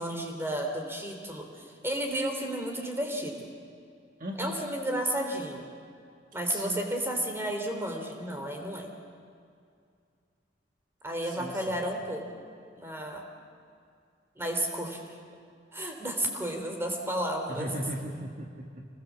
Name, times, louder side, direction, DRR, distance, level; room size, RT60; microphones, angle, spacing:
voice 1, 0.0-3.5 4.4-5.6 6.3-8.9 11.0-12.2 12.8-13.2 14.4-15.0 15.7-17.7, right 1 dB, 15° right, 3 dB, 3.3 m, -32 dB
voice 2, 4.2-4.5 6.5-6.9 11.3-11.6 17.5-18.8, equal, 45° right, 1 dB, 1.7 m, -37 dB
27.0 x 20.0 x 7.4 m, 2.3 s
head